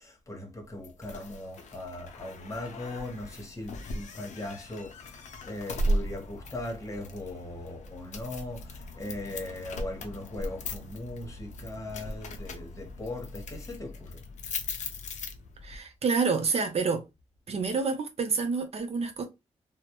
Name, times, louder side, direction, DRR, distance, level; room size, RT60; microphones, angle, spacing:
voice 1, 0.0-14.2, left 1 dB, 25° left, 0.9 m, -39 dB
sound 1, 0.8-15.8, equal, 85° left, 0.4 m, -37 dB
voice 2, 15.6-17.0 17.5-19.2, right 4 dB, 60° right, 0.5 m, -28 dB
2.2 x 2.0 x 2.8 m
wide cardioid pair, 95°, 12 cm